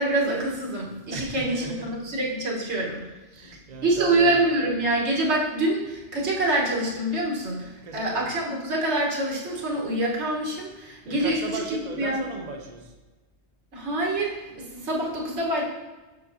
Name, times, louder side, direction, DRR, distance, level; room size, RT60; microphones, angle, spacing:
voice 1, 0.0-3.0 3.8-12.3 13.7-15.6, right 1 dB, 80° right, -3 dB, 1.6 m, -26 dB
voice 2, 1.1-1.9 3.4-4.3 7.8-8.3 11.1-12.8, right 3 dB, 40° right, 3 dB, 0.8 m, -36 dB
7.5 x 5.9 x 2.7 m, 1.2 s
omnidirectional pair, 1.2 m